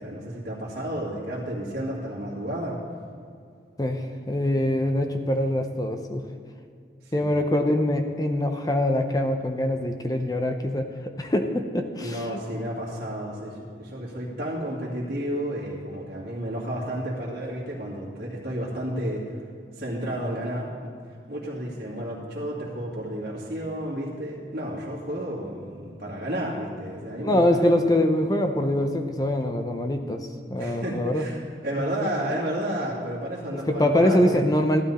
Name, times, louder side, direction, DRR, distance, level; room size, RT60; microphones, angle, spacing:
voice 1, 0.0-2.8 7.1-7.4 12.0-19.2 19.8-20.9 21.3-27.7 30.6-34.4, right 1 dB, 55° right, -8 dB, 2.4 m, -32 dB
voice 2, 3.8-6.2 7.1-10.9 11.2-12.3 27.2-31.2 31.8-31.9 33.5-34.8, left 1 dB, 20° left, 6 dB, 0.7 m, -24 dB
14.5 x 12.0 x 4.3 m, 2.3 s
head